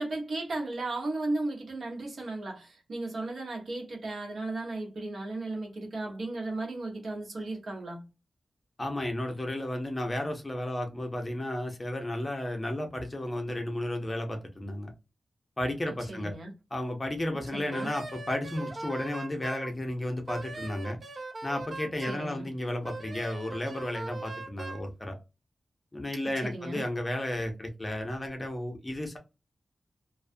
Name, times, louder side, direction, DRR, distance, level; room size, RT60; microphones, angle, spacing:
voice 1, 0.0-8.0 16.1-16.5 17.5-17.9 22.1-22.5 26.4-26.8, right 2 dB, 65° right, 1.1 m, -35 dB
voice 2, 8.8-14.9 15.6-16.3 16.7-21.0 21.4-25.1 25.9-29.2, left 1 dB, 20° left, 0.6 m, -33 dB
Wind instrument woodwind instrument, 17.7-19.7 20.3-22.3 22.8-24.9, right 2 dB, 45° right, 0.5 m, -40 dB
2.4 x 2.3 x 2.5 m
wide cardioid pair, 170°, 0 cm